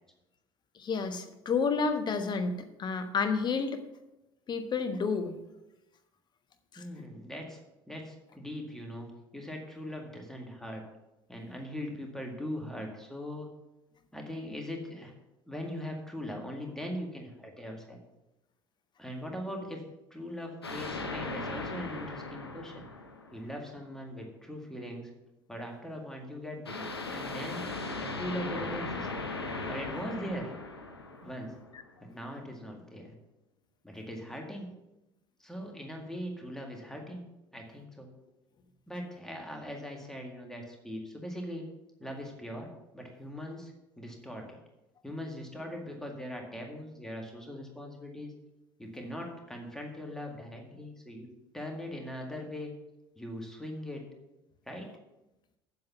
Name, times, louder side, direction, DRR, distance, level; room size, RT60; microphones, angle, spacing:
voice 1, 0.7-3.8 4.5-5.4 6.7-6.8 31.7-31.8, left 5 dB, 35° left, 7 dB, 1.1 m, -30 dB
voice 2, 6.8-7.6 7.9-9.1 9.3-10.8 11.3-13.5 14.1-15.1 15.5-18.0 19.0-19.8 20.1-22.8 23.3-25.1 25.5-27.6 28.0-29.1 29.7-30.5 31.2-31.5 32.1-33.1 33.8-34.7 35.4-37.2 37.5-38.1 38.9-41.7 42.0-42.7 42.9-44.5 45.0-48.3 48.8-51.3 51.5-52.7 53.2-54.0 54.7-54.9, equal, 5° left, 1 dB, 2.0 m, -40 dB
sound 1, 20.6-23.7 26.6-31.8, left 3 dB, 85° left, 0.8 m, -38 dB
7.9 x 7.6 x 5.7 m, 0.96 s
figure-of-eight pair, 60°, 13 cm